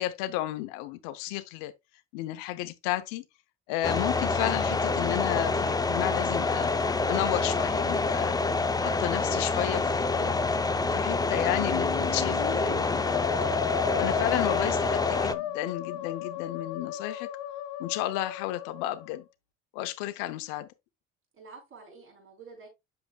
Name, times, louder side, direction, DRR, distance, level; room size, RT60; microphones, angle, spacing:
voice 1, 0.0-1.7 2.1-3.2 3.7-6.7 7.1-8.4 8.8-10.4 10.9-13.2 13.9-17.3 17.8-19.2 19.7-20.7, left 15 dB, 90° left, 0.8 m, -32 dB
sound 1, 3.8-15.3, left 3 dB, 10° left, 0.6 m, -27 dB
Musical instrument, 11.2-19.2, left 9 dB, 65° left, 1.9 m, -35 dB
voice 2, 21.3-22.7, right 4 dB, 40° right, 4.6 m, -50 dB
7.9 x 6.5 x 2.3 m
supercardioid pair, 85°, 31 cm